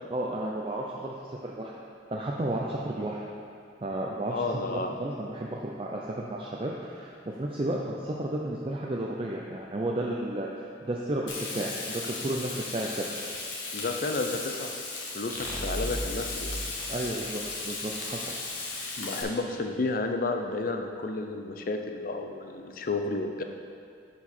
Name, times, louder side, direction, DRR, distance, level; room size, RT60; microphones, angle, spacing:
voice 1, 0.1-1.7 2.1-3.2 3.8-13.1 16.9-18.3, right 1 dB, 30° right, -2 dB, 0.4 m, -33 dB
voice 2, 4.3-4.9 13.7-14.7 15.1-16.6 19.0-23.4, left 3 dB, 45° left, 5 dB, 0.5 m, -31 dB
Frying (food), 11.3-19.2, left 3 dB, 75° left, 1.3 m, -36 dB
sound 1, 15.3-17.9, equal, 10° left, 0.7 m, -37 dB
9.6 x 4.6 x 4.3 m, 2.4 s
head